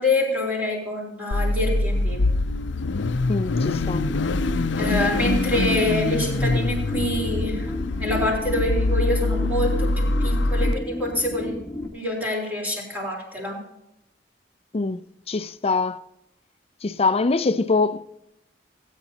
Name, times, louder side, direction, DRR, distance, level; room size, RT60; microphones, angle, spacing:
voice 1, 0.0-2.2 4.8-7.7 8.0-11.6 11.9-13.6, left 1 dB, 10° right, 3.7 m, -26 dB
Car / Idling / Accelerating revving vroom, 1.3-10.7, left 2 dB, 85° left, 0.5 m, -24 dB
voice 2, 3.3-4.1 14.7-15.0 15.3-16.0 16.8-18.1, left 3 dB, 35° left, 0.5 m, -23 dB
sound 1, 3.8-11.9, left 1 dB, 15° left, 1.5 m, -32 dB
17.5 x 9.1 x 2.8 m
head